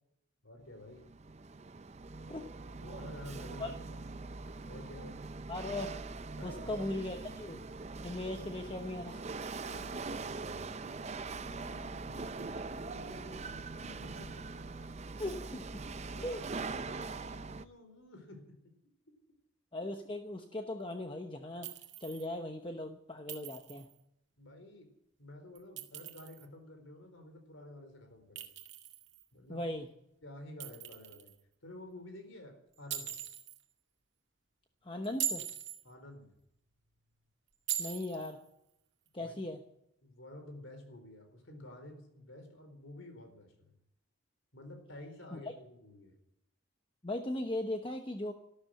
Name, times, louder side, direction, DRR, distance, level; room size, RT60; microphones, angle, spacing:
voice 1, 0.4-1.1 2.8-4.0 4.6-5.2 6.3-6.8 9.7-14.9 16.1-18.7 19.1-19.2 24.4-24.9 25.2-28.5 29.3-29.6 30.2-31.3 31.6-33.1 35.8-36.4 39.2-39.4 40.0-43.8 44.5-46.2, left 1 dB, 75° left, 7 dB, 4.2 m, -51 dB
Chatter / Hiss / Rattle, 0.8-17.7, right 3 dB, 30° right, 0.5 m, -42 dB
voice 2, 5.5-5.9 6.4-7.6 8.0-9.2 15.2-15.7 16.2-16.4 19.7-23.9 29.5-29.8 34.8-35.4 37.8-38.4 39.1-39.6 45.3-45.4 47.0-48.3, left 1 dB, 25° left, 5 dB, 1.0 m, -38 dB
Chink clink, 21.6-22.3 23.3-23.9 25.5-26.4 28.4-29.2 30.6-31.3 32.9-33.6 35.0-35.8 37.7-38.3, right 11 dB, 55° right, 2.1 m, -40 dB
13.0 x 13.0 x 7.7 m, 0.80 s
head